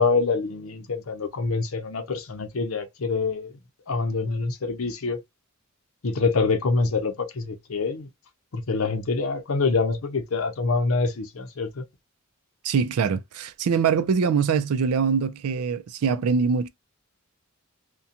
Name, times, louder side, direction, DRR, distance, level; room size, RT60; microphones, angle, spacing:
voice 1, 0.0-3.5 3.9-5.2 6.0-8.1 8.5-11.8, left 4 dB, 65° left, 0.6 m, -25 dB
voice 2, 12.6-16.7, right 6 dB, 80° right, 0.4 m, -23 dB
2.5 x 2.2 x 2.7 m
head